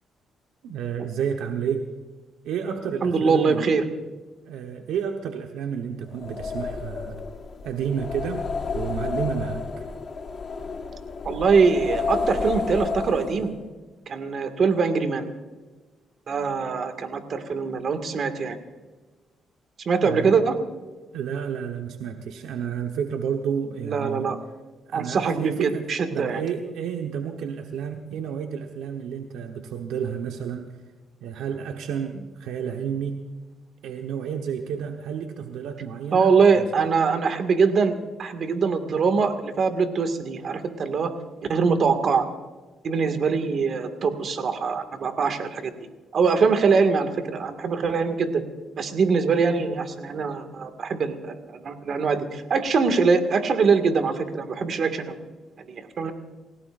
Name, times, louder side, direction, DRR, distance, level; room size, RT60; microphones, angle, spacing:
voice 1, 0.6-1.9 2.4-3.7 4.4-7.2 7.6-8.4 8.7-9.6 20.0-20.4 21.1-24.3 24.9-25.8 26.1-30.7 31.2-33.2 33.8-36.9 56.0-56.1, right 7 dB, 85° right, 3 dB, 1.2 m, -31 dB
voice 2, 3.0-3.8 11.2-13.5 14.1-15.3 16.3-18.6 19.9-20.6 23.8-24.4 24.9-26.4 36.1-41.1 41.5-42.3 42.8-45.7 46.1-48.4 48.8-55.2 55.7-56.1, right 5 dB, 55° right, 7 dB, 2.0 m, -23 dB
sound 1, 6.1-13.7, left 4 dB, 50° left, 1.5 m, -31 dB
29.0 x 17.0 x 2.6 m, 1.3 s
cardioid pair, 90°, 0 cm